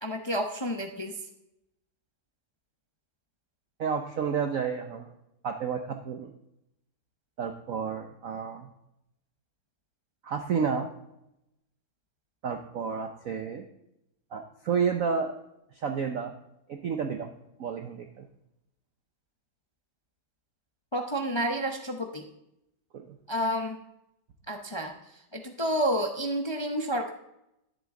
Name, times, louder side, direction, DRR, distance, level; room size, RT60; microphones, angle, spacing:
voice 1, 0.0-1.2 20.9-22.2 23.3-23.8 24.5-24.9 25.3-27.1, equal, 45° left, 4 dB, 0.3 m, -30 dB
voice 2, 3.8-5.1 5.4-6.3 7.4-8.7 10.2-10.9 12.4-13.6 14.3-15.4 15.7-16.3 16.7-17.3 17.6-18.3 22.9-23.2, right 6 dB, 55° right, 5 dB, 1.0 m, -31 dB
11.5 x 10.5 x 3.8 m, 0.83 s
omnidirectional pair, 2.1 m